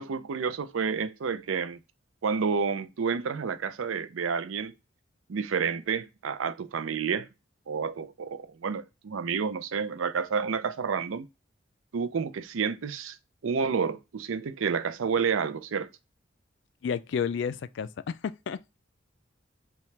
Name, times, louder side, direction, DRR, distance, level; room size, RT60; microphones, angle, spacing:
voice 1, 0.0-1.8 2.2-4.7 5.3-7.3 7.7-11.3 11.9-13.2 13.4-15.9, right 6 dB, 90° right, 0.5 m, -30 dB
voice 2, 16.8-18.8, left 7 dB, 65° left, 0.3 m, -31 dB
5.7 x 2.3 x 3.2 m
head